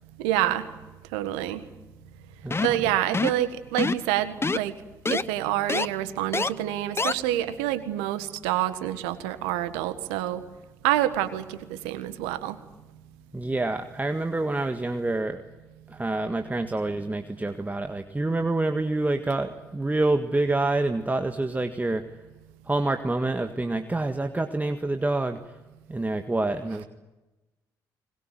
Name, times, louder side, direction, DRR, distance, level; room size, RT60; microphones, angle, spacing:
voice 1, 0.2-0.7 1.1-1.6 2.6-4.7 5.1-10.4 10.8-12.6, right 13 dB, 80° right, 12 dB, 1.5 m, -27 dB
voice 2, 2.4-2.9 13.3-15.4 15.9-22.1 22.7-25.4 25.9-26.9, right 2 dB, 15° right, 7 dB, 1.7 m, -27 dB
sound 1, 2.5-2.8 3.1-3.4 3.8-4.1 4.4-4.6 5.1-5.2 5.7-5.9 6.3-6.5 7.0-7.1, left 3 dB, 25° left, 0.9 m, -25 dB
21.5 x 21.0 x 9.2 m, 1.1 s
hypercardioid pair, 45°, 10 cm